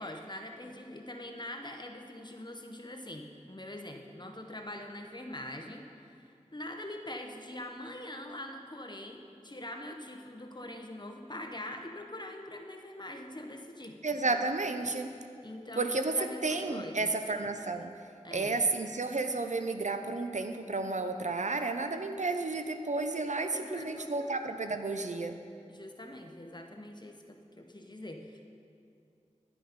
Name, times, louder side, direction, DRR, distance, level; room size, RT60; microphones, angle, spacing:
voice 1, 0.0-14.0 14.3-14.4 15.4-17.1 18.2-18.6 23.5-24.4 25.7-28.5, left 1 dB, 35° left, 3 dB, 1.0 m, -43 dB
voice 2, 14.0-15.1 15.8-18.0 18.3-25.4, right 3 dB, 70° right, 7 dB, 0.6 m, -32 dB
10.5 x 8.7 x 5.2 m, 2.5 s
wide cardioid pair, 45°, 13 cm